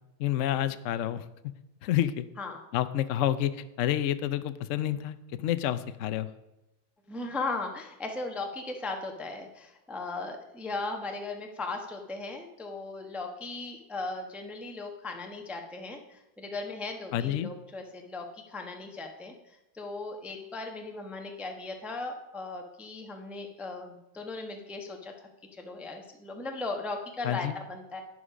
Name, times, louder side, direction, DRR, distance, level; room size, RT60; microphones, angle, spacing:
voice 1, 0.2-1.2 1.8-2.2 2.7-6.3 17.1-17.5 27.2-27.6, left 12 dB, 85° left, 13 dB, 0.6 m, -29 dB
voice 2, 7.1-28.0, left 3 dB, ahead, 3 dB, 0.9 m, -37 dB
11.0 x 10.0 x 5.1 m, 0.94 s
omnidirectional pair, 2.1 m